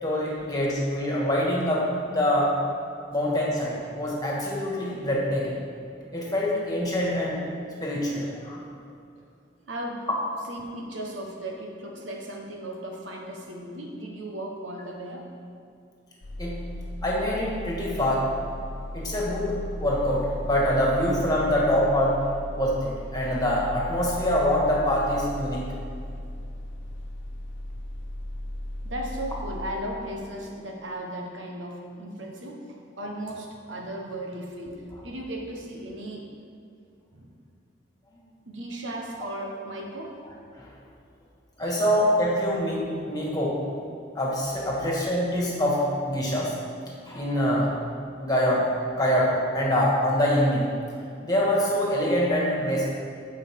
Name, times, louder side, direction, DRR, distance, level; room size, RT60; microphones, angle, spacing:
voice 1, 0.0-2.5 3.1-5.6 6.1-7.4 7.8-8.6 16.4-16.5 17.0-18.3 18.9-22.2 22.5-25.6 40.6-40.7 41.6-43.5 44.2-46.5 47.1-47.8 48.2-48.7 49.0-50.7 51.2-52.9, equal, 20° left, -4 dB, 1.9 m, -25 dB
voice 2, 9.7-10.1 10.5-15.3 28.8-36.3 37.1-37.3 38.5-40.2 41.6-41.8, right 1 dB, 80° right, 1 dB, 1.3 m, -36 dB
sound 1, 16.2-29.7, left 1 dB, 75° left, 0.8 m, -36 dB
15.5 x 5.4 x 3.7 m, 2.4 s
head